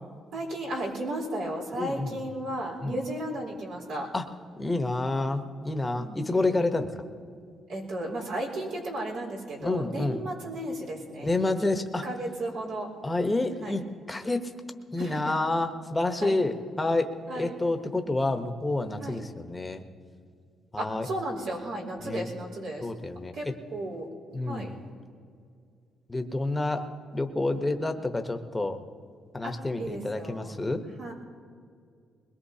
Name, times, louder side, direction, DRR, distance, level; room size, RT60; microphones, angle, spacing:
voice 1, 0.3-4.1 5.9-6.2 7.7-11.5 12.0-12.9 13.6-13.7 15.0-15.3 16.2-16.4 17.3-17.6 19.0-19.2 20.8-22.9 23.3-24.1 24.4-24.7 27.5-27.6 29.4-30.6 31.0-31.1, right 1 dB, 90° right, -3 dB, 4.4 m, -34 dB
voice 2, 1.7-2.2 2.8-3.0 4.1-4.2 4.6-6.9 9.6-10.2 11.2-12.0 13.0-13.8 14.1-14.4 14.9-19.8 20.7-21.1 22.0-22.3 22.8-23.3 24.3-24.8 26.1-26.9 27.1-28.8 29.3-30.8, left 2 dB, 15° left, 6 dB, 1.1 m, -28 dB
21.5 x 21.0 x 2.8 m, 2.2 s
cardioid pair, 90°, 0 cm